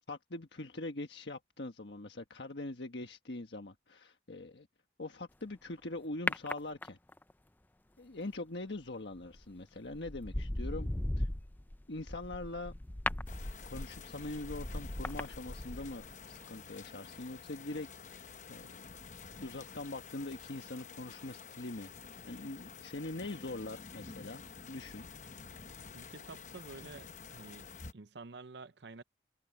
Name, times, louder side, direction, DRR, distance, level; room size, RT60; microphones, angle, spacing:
voice 1, 0.1-4.7 5.0-7.0 8.0-10.9 11.2-11.3 11.9-12.7 13.7-18.9 19.4-25.1, left 2 dB, 80° left, 1.4 m, -43 dB
sound 1, 6.3-7.3 9.2-9.4 9.9-16.1 16.4-16.5, left 1 dB, 10° left, 0.4 m, -38 dB
sound 2, 13.3-27.9, left 5 dB, 40° left, 1.0 m, -50 dB
voice 2, 25.9-27.7 27.9-29.0, right 3 dB, 80° right, 0.7 m, -50 dB
head